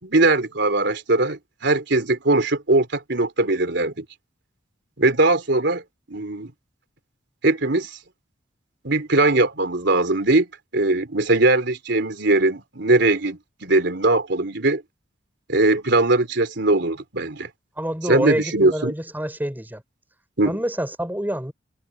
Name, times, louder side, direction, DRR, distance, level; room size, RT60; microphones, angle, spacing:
voice 1, 0.0-4.0 5.0-5.8 6.1-6.5 7.4-8.0 8.8-14.8 15.5-17.5 18.0-18.9 20.4-20.5, right 2 dB, 65° right, 3.6 m, -20 dB
voice 2, 17.8-19.8 20.5-21.5, right 1 dB, 10° right, 4.2 m, -27 dB
head